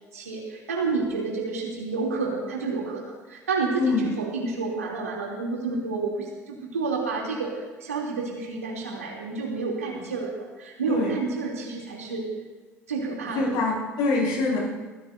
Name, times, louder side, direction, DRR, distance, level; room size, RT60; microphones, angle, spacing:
voice 1, 0.1-12.3 12.9-13.6, right 4 dB, 90° right, -2 dB, 3.0 m, -30 dB
voice 2, 13.3-14.6, left 3 dB, 65° left, -4 dB, 5.5 m, -24 dB
22.0 x 15.5 x 2.7 m, 1.3 s
hypercardioid pair, 60°, 8 cm